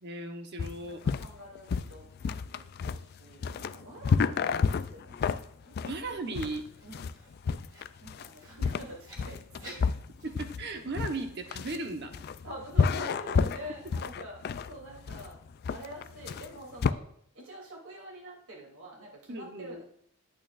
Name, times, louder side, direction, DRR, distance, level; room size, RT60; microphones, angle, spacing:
voice 1, 0.0-1.0 5.8-6.6 10.2-12.2 19.3-19.8, right 2 dB, 50° right, 5 dB, 1.0 m, -36 dB
sound 1, 0.6-16.9, left 5 dB, 50° left, 0.3 m, -30 dB
voice 2, 0.8-6.0 6.8-7.1 8.0-9.9 12.4-15.4 15.7-17.0 17.3-19.8, equal, 75° right, -3 dB, 2.9 m, -46 dB
Writing, 6.0-11.0, equal, 20° right, 2.2 m, -54 dB
11.0 x 8.7 x 2.5 m, 0.67 s
head